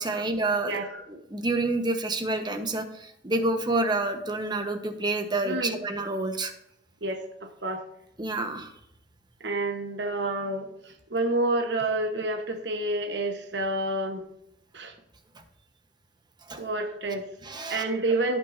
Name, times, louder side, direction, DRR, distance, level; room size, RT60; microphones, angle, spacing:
voice 1, 0.0-0.8 1.1-6.5 8.2-8.7 16.5-16.6 17.4-17.8, right 2 dB, 25° right, 6 dB, 1.1 m, -28 dB
voice 2, 0.6-1.0 5.4-5.8 7.0-7.8 9.4-14.2 14.7-14.9 16.6-17.3 17.7-18.4, right 2 dB, 70° right, 4 dB, 1.2 m, -29 dB
16.0 x 6.1 x 2.7 m, 0.79 s
head